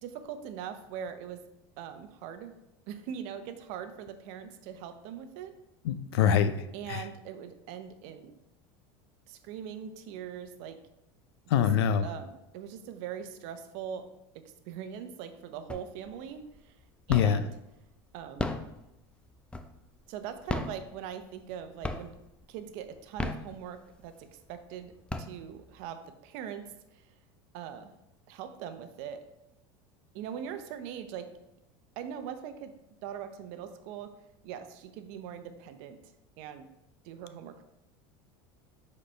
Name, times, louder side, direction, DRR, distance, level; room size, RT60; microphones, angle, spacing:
voice 1, 0.0-1.4 1.8-2.5 2.9-5.5 6.7-8.3 9.3-10.8 11.5-11.7 12.0-14.0 14.7-16.7 17.1-17.5 18.1-18.5 20.1-22.1 22.5-24.9 25.2-27.0 27.5-27.9 28.3-29.2 30.1-31.3 32.0-32.7 33.0-34.1 34.4-36.0 36.4-36.7 37.0-37.6, right 8 dB, 65° right, 9 dB, 0.7 m, -41 dB
voice 2, 5.8-6.6 6.9-7.0 11.5-12.1 17.1-17.4, left 8 dB, 90° left, 11 dB, 0.5 m, -24 dB
sound 1, 15.7-16.2 16.5-17.6 18.2-20.0 20.4-21.5 21.8-22.4 23.0-24.0 24.5-24.6 24.9-25.8, left 2 dB, 10° left, 0.4 m, -35 dB
7.5 x 4.2 x 3.3 m, 0.89 s
supercardioid pair, 120°, 13 cm